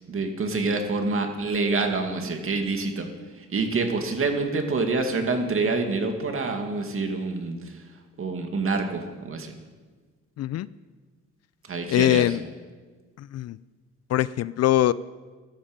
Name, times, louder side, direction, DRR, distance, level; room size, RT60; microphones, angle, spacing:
voice 1, 0.1-3.1 3.4-7.6 8.2-9.5 11.7-12.4, right 3 dB, 45° right, 5 dB, 2.2 m, -26 dB
voice 2, 11.9-12.4 13.3-13.6 14.1-14.9, left 13 dB, 55° left, 19 dB, 0.4 m, -22 dB
15.5 x 12.5 x 5.3 m, 1.4 s
cardioid pair, 90°, 30 cm